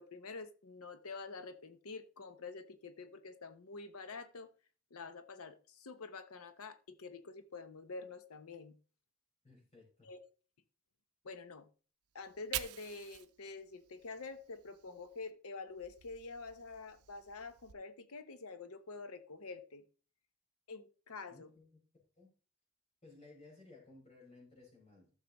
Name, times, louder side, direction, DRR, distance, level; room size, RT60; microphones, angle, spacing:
voice 1, 0.0-4.5 4.9-8.8 10.0-10.2 11.2-11.7 12.1-19.8 20.7-21.5, left 4 dB, 80° left, 0.8 m, -47 dB
voice 2, 9.4-10.1 21.3-21.8 22.2-22.3 23.0-25.1, left 3 dB, 30° left, 4.7 m, -59 dB
Fire, 12.1-15.3 15.7-17.7, right 13 dB, 90° right, 0.6 m, -48 dB
14.0 x 6.6 x 3.0 m
head